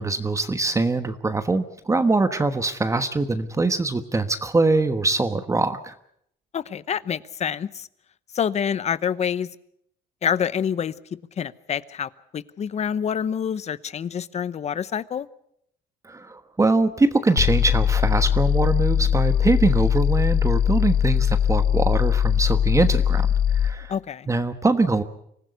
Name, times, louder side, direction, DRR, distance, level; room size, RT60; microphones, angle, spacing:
voice 1, 0.0-5.9 16.0-23.9 24.3-25.0, right 3 dB, 20° right, 9 dB, 1.2 m, -23 dB
voice 2, 6.5-7.9 8.3-9.5 10.2-10.9 11.4-15.3 23.9-24.3, left 8 dB, 40° left, 17 dB, 0.9 m, -27 dB
sound 1, 17.4-23.8, left 9 dB, 70° left, 1.0 m, -21 dB
25.0 x 15.0 x 8.1 m, 0.73 s
cardioid pair, 110°, 17 cm